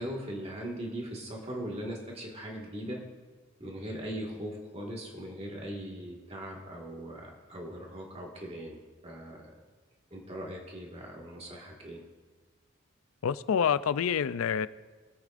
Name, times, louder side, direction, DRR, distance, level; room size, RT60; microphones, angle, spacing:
voice 1, 0.0-3.0 3.6-8.8 9.0-9.4 10.1-12.0, right 1 dB, 30° right, -1 dB, 1.8 m, -39 dB
voice 2, 13.2-14.7, left 7 dB, 80° left, 15 dB, 0.4 m, -27 dB
21.5 x 8.4 x 2.5 m, 1.3 s
head